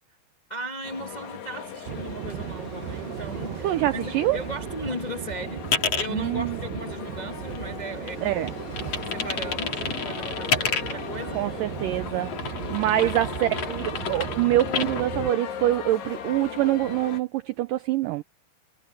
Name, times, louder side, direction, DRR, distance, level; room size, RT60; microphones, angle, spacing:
voice 1, 0.5-8.5 9.1-11.4 12.9-13.1 13.6-14.1, equal, 60° left, 0.4 m, -37 dB
sound 1, 0.8-17.2, left 8 dB, 75° left, 4.2 m, -39 dB
sound 2, 1.8-15.3, right 12 dB, 70° right, 2.6 m, -36 dB
voice 2, 3.6-4.4 6.1-6.6 8.2-8.5 11.3-18.2, right 14 dB, 90° right, 1.9 m, -25 dB
sound 3, 5.6-6.1 6.6-7.8 8.1-11.1 11.8-15.1, left 6 dB, 40° left, 3.5 m, -30 dB
omnidirectional pair, 4.8 m